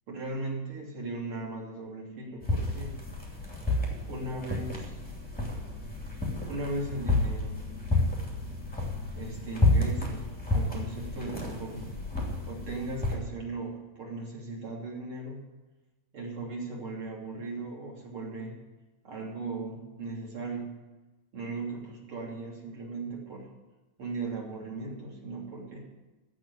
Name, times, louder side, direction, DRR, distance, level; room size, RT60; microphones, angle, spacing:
voice 1, 0.1-2.9 4.0-4.9 6.4-7.6 9.1-11.9 12.5-15.4 16.1-18.6 19.0-20.8 21.3-23.5 24.0-25.9, right 2 dB, 35° right, -2 dB, 3.4 m, -37 dB
sound 1, 2.4-13.1, left 2 dB, 5° left, 1.2 m, -30 dB
15.5 x 6.2 x 10.0 m, 1.1 s
omnidirectional pair, 5.1 m